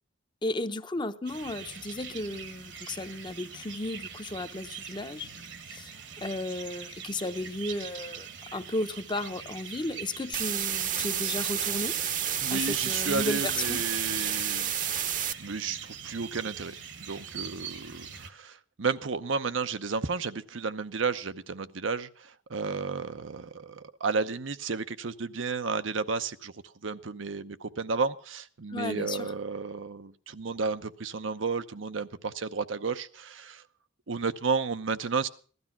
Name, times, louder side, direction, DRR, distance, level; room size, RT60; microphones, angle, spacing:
voice 1, 0.4-5.3 5.7-5.9 6.2-11.9 12.5-13.8 28.7-29.3, left 2 dB, 25° left, 0.7 m, -34 dB
sound 1, 1.3-18.3, right 7 dB, 65° right, 1.3 m, -43 dB
sound 2, 10.3-15.3, right 9 dB, 45° right, 0.8 m, -30 dB
voice 2, 12.4-26.5 26.8-33.6 34.1-35.3, right 4 dB, 85° right, 0.8 m, -32 dB
16.0 x 12.5 x 5.9 m
head